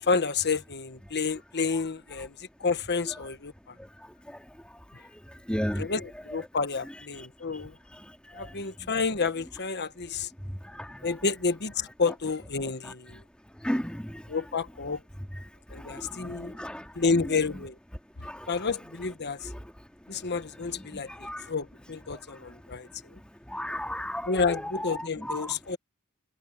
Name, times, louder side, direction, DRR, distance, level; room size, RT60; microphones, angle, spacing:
voice 1, 0.0-2.3 2.6-3.5 5.8-7.7 8.3-10.3 11.0-13.2 14.3-15.0 15.7-16.6 16.9-17.7 18.5-19.5 20.1-22.9 24.3-25.8, left 4 dB, 50° left, 1.2 m, -30 dB
voice 2, 5.5-5.8 13.6-14.0 16.6-16.7 21.2-21.4 23.5-24.9 25.3-25.4, equal, 5° left, 2.3 m, -31 dB
head